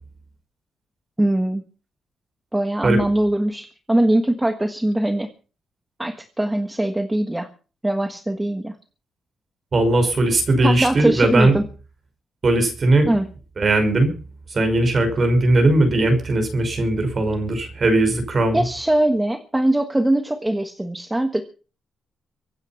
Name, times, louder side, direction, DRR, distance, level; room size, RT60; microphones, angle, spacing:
voice 1, 1.2-1.6 2.5-5.3 6.0-7.5 7.8-8.7 10.6-11.6 13.1-13.3 18.5-21.4, right 1 dB, 5° right, 7 dB, 1.5 m, -21 dB
voice 2, 9.7-11.5 12.4-13.1 13.6-14.1 14.5-18.6, right 2 dB, 30° right, 7 dB, 5.5 m, -18 dB
24.0 x 9.6 x 5.8 m, 0.37 s
wide cardioid pair, 170°, 0 cm